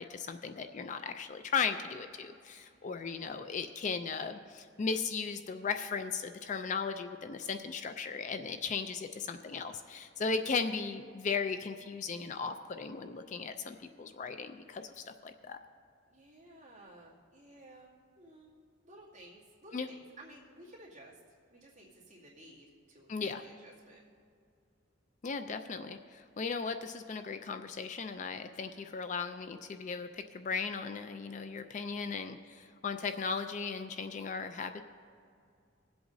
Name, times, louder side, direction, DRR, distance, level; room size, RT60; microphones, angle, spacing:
voice 1, 0.0-15.6 19.7-19.9 23.1-23.4 25.2-34.8, left 5 dB, 35° left, 8 dB, 0.3 m, -37 dB
voice 2, 2.7-3.3 16.1-17.9 18.2-18.5 18.8-21.2 21.5-24.0, right 1 dB, 35° right, -7 dB, 2.3 m, -55 dB
20.0 x 7.9 x 2.7 m, 2.3 s
head